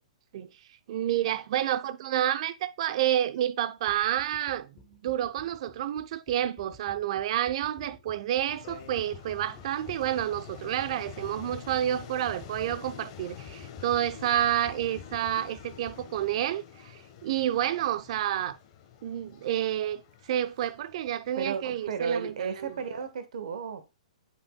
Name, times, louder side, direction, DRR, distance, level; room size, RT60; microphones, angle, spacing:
voice 1, 0.9-18.6 19.0-20.0 20.3-22.7, right 11 dB, 55° right, 0.6 m, -29 dB
sound 1, 3.9-16.4, left 6 dB, 15° left, 1.1 m, -51 dB
sound 2, 8.5-23.1, left 9 dB, 40° left, 1.3 m, -48 dB
voice 2, 21.4-23.8, right 6 dB, 70° right, 1.2 m, -33 dB
8.9 x 5.2 x 2.3 m
hypercardioid pair, 140°, 4 cm